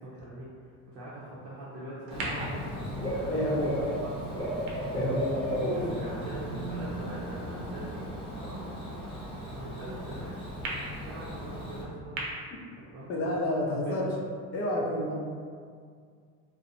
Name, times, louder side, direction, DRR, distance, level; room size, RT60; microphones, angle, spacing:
voice 1, 0.0-4.6 5.7-8.1 8.4-8.6 9.5-10.5 11.0-12.2 12.9-13.1 13.7-14.0, right 1 dB, 55° right, -8 dB, 0.6 m, -42 dB
Bird / Cricket, 2.1-11.8, equal, 15° left, 1.0 m, -35 dB
sound 1, 2.1-6.5 7.2-7.3 10.6-10.7 12.2-12.3, right 2 dB, 85° right, 0.7 m, -41 dB
voice 2, 3.2-3.8 4.9-5.9 13.1-14.1 14.5-15.1, left 1 dB, 40° left, -3 dB, 0.6 m, -30 dB
2.5 x 2.0 x 2.7 m, 2.1 s
cardioid pair, 110°, 37 cm